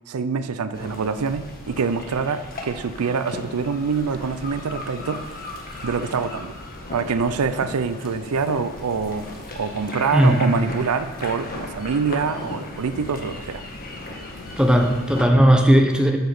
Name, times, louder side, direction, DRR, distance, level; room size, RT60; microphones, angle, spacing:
voice 1, 0.1-5.5 5.8-6.6 6.9-9.3 9.5-13.6, right 5 dB, 80° right, 12 dB, 0.5 m, -25 dB
sound 1, 0.7-15.2, left 2 dB, 40° left, 1.5 m, -36 dB
voice 2, 14.6-16.2, right 1 dB, 5° right, 3 dB, 0.9 m, -16 dB
8.0 x 5.8 x 6.6 m, 1.2 s
head